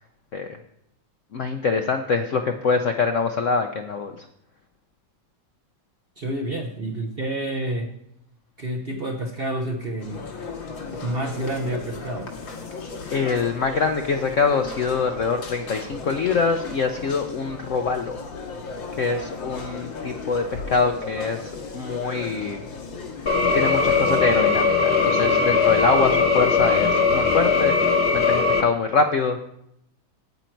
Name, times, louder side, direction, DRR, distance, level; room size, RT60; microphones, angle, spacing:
voice 1, 1.3-4.1 13.1-18.2 19.0-22.6 23.5-27.8 28.1-29.4, left 4 dB, 65° left, 5 dB, 0.7 m, -24 dB
voice 2, 6.2-7.9 8.6-10.3 11.0-12.3 16.1-16.2 17.6-17.7, right 1 dB, 45° right, 2 dB, 0.7 m, -29 dB
sound 1, 10.0-24.2, left 4 dB, 85° left, 2.2 m, -36 dB
sound 2, 23.3-28.6, left 4 dB, 45° left, 1.0 m, -20 dB
9.1 x 9.0 x 4.5 m, 0.78 s
omnidirectional pair, 2.0 m